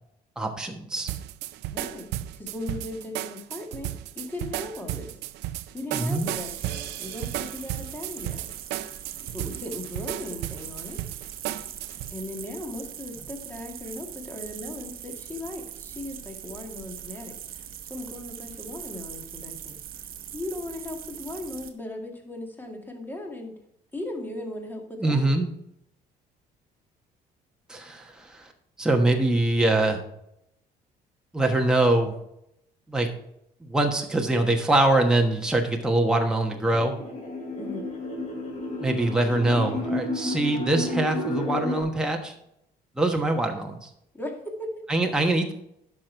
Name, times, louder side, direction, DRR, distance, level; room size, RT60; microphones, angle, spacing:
voice 1, 0.4-1.1 5.9-6.3 25.0-25.5 27.7-28.5 28.8-30.0 31.3-32.1 32.9-33.1 33.6-36.9 38.8-42.3 43.0-43.9 44.9-45.5, right 2 dB, 5° right, 1 dB, 1.2 m, -23 dB
sound 1, 1.1-12.1, right 13 dB, 85° right, 0.5 m, -34 dB
voice 2, 1.7-2.1 2.3-3.9 4.1-5.2 5.7-8.5 9.3-11.0 12.1-19.8 20.3-23.6 23.9-25.3 37.5-37.9 44.1-44.7, left 2 dB, 10° left, 2 dB, 2.1 m, -37 dB
sound 2, 6.0-21.7, right 10 dB, 60° right, 1.0 m, -41 dB
sound 3, 36.7-41.8, left 1 dB, 45° left, 3.5 m, -31 dB
10.5 x 6.2 x 4.5 m, 0.77 s
cardioid pair, 110°, 17 cm